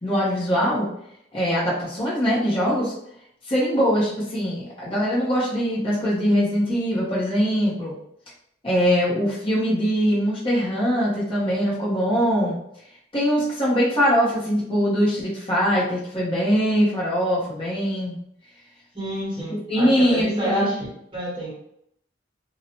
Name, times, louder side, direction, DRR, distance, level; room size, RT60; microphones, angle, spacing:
voice 1, 0.0-0.9 1.3-2.9 3.5-7.9 8.6-12.6 13.1-18.2 19.5-20.8, equal, 30° left, -7 dB, 0.9 m, -22 dB
voice 2, 18.9-20.8 21.1-21.5, right 1 dB, 30° right, -7 dB, 1.2 m, -29 dB
2.8 x 2.3 x 2.9 m, 0.74 s
head